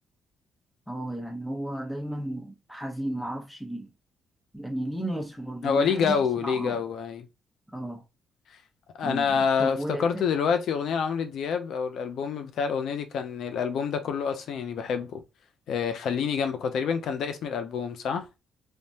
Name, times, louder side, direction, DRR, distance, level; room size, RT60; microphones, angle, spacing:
voice 1, 0.9-3.9 4.5-6.8 7.7-8.0 9.0-10.2, right 1 dB, ahead, 0.8 m, -34 dB
voice 2, 5.6-7.3 9.0-15.2 15.7-18.3, left 6 dB, 70° left, 0.4 m, -27 dB
3.3 x 2.1 x 2.7 m
cardioid pair, 90°, 0 cm